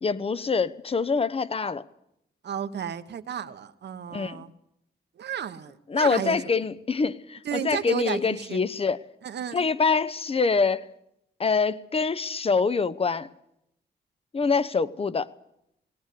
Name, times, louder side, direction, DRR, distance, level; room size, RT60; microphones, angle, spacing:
voice 1, 0.0-1.8 4.1-4.5 5.9-9.0 9.5-10.8 11.4-13.3 14.3-15.3, left 4 dB, 35° left, 0.8 m, -25 dB
voice 2, 2.4-4.5 5.2-6.4 7.4-8.6 9.2-9.7, right 8 dB, 70° right, 1.1 m, -33 dB
19.0 x 18.5 x 8.4 m
wide cardioid pair, 110°, 18 cm